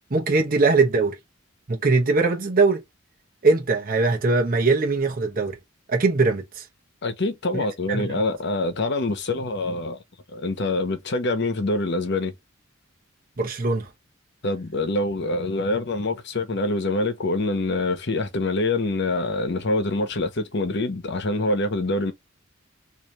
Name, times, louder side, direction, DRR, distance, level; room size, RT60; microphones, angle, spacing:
voice 1, 0.1-1.2 1.7-2.8 3.4-5.6 5.9-6.6 7.5-7.6 7.9-8.1 13.4-13.9, right 3 dB, 45° right, 0.8 m, -21 dB
voice 2, 7.0-10.0 10.3-12.3 14.4-22.1, left 2 dB, 60° left, 1.0 m, -25 dB
3.2 x 2.8 x 4.0 m
head